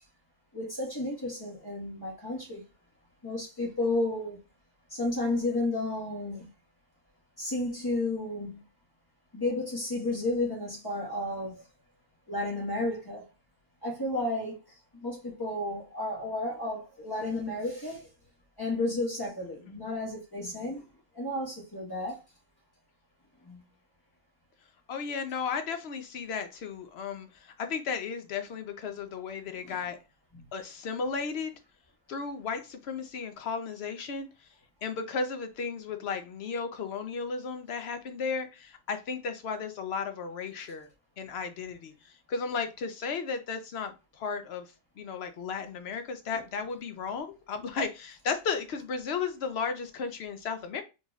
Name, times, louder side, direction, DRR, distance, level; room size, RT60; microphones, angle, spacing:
voice 1, 0.5-2.6 3.2-4.4 4.9-6.5 7.4-8.6 9.3-11.6 12.3-13.2 13.8-14.6 14.9-18.1 18.6-20.8 21.1-22.2 23.4-23.6 29.6-29.7 30.3-30.5, left 2 dB, 15° left, 1.4 m, -32 dB
voice 2, 24.9-30.0 30.5-31.5 32.1-34.3 34.8-40.9 41.2-50.8, left 5 dB, 60° left, 0.7 m, -34 dB
3.9 x 3.0 x 2.4 m
omnidirectional pair, 1.4 m